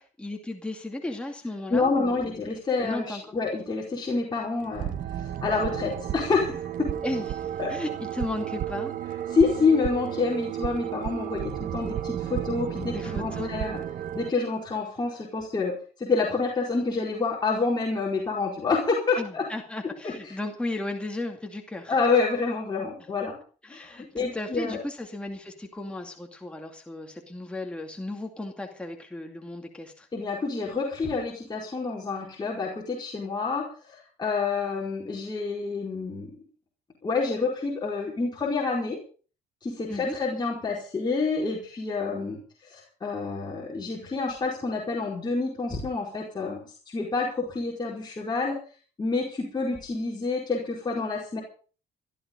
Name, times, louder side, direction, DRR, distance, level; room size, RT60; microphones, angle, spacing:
voice 1, 0.2-2.5 2.8-3.2 7.0-8.9 12.8-13.5 19.1-22.0 23.6-30.1 39.9-40.2, left 2 dB, 5° left, 2 dB, 2.4 m, -35 dB
voice 2, 1.7-4.9 5.2-6.9 7.6-7.8 9.3-13.8 14.1-19.5 20.0-20.3 21.9-23.4 23.7-24.8 30.1-36.3 37.0-39.0 39.6-48.6 49.0-51.4, left 4 dB, 25° left, -3 dB, 4.7 m, -28 dB
sound 1, 4.6-14.3, right 10 dB, 55° right, 1.3 m, -33 dB
16.5 x 12.5 x 5.4 m, 0.40 s
cardioid pair, 110°, 17 cm